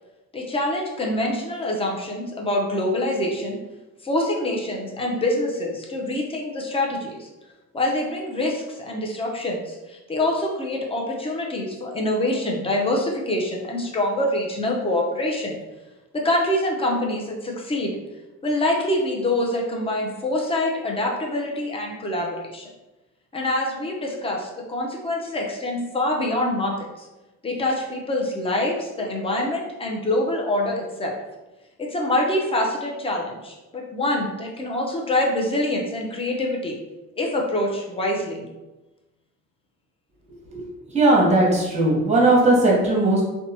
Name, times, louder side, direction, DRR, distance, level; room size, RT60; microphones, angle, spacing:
voice 1, 0.3-3.6 4.0-7.3 7.7-15.6 16.1-18.0 18.4-22.7 23.3-27.1 27.4-31.2 31.8-36.8 37.2-38.5, left 1 dB, 20° left, -1 dB, 0.6 m, -25 dB
voice 2, 40.9-43.2, right 2 dB, 20° right, -3 dB, 0.9 m, -18 dB
2.8 x 2.2 x 2.7 m, 1.1 s
cardioid pair, 90°, 30 cm